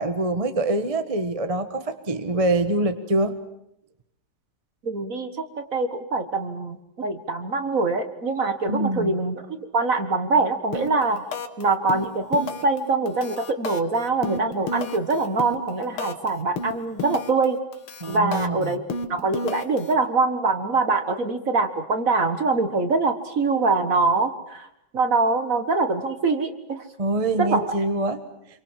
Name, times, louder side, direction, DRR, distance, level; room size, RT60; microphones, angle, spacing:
voice 1, 0.0-3.3 8.7-9.1 18.0-18.7 27.0-28.2, right 2 dB, 20° right, 9 dB, 1.1 m, -24 dB
voice 2, 4.8-11.2 11.6-17.6 18.1-18.8 19.1-24.7 24.9-26.8 27.4-27.7, right 3 dB, 40° right, 8 dB, 1.8 m, -24 dB
sound 1, 10.7-11.0 11.3-11.6 11.9-12.8 13.1-16.3 16.6-17.5 17.7-19.9, left 3 dB, 75° left, 2.3 m, -32 dB
27.0 x 24.0 x 7.5 m, 0.79 s
omnidirectional pair, 2.4 m